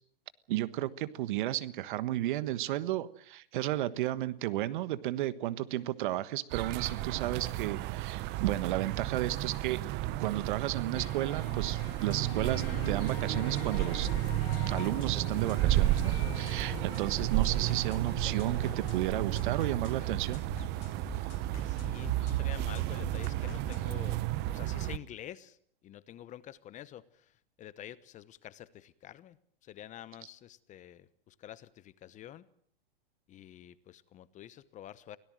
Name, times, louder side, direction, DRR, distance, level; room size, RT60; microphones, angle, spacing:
voice 1, 0.5-9.8 10.2-14.1 14.7-20.4, right 14 dB, 55° right, 15 dB, 1.4 m, -33 dB
sound 1, 6.5-25.0, right 16 dB, 35° right, 1.0 m, -32 dB
sound 2, 10.9-19.5, left 6 dB, 85° left, 3.2 m, -46 dB
sound 3, 12.0-24.0, left 11 dB, 40° left, 2.4 m, -48 dB
voice 2, 21.5-24.2 24.5-25.6 25.8-32.5 33.3-35.2, left 12 dB, 25° left, 17 dB, 0.9 m, -48 dB
24.5 x 17.5 x 7.7 m, 0.65 s
hypercardioid pair, 120°, 29 cm